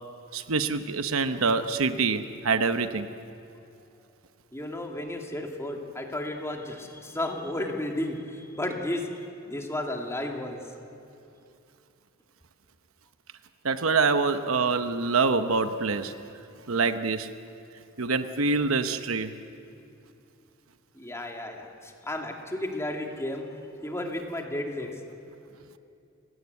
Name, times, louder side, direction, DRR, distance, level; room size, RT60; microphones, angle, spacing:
voice 1, 0.3-3.1 13.6-16.2 16.7-17.3 18.0-19.3, right 4 dB, 80° right, 10 dB, 1.0 m, -25 dB
voice 2, 4.5-9.1 9.5-10.6 20.9-23.4 23.8-24.9, left 1 dB, 15° left, 2 dB, 2.4 m, -33 dB
29.5 x 17.0 x 8.2 m, 2.7 s
head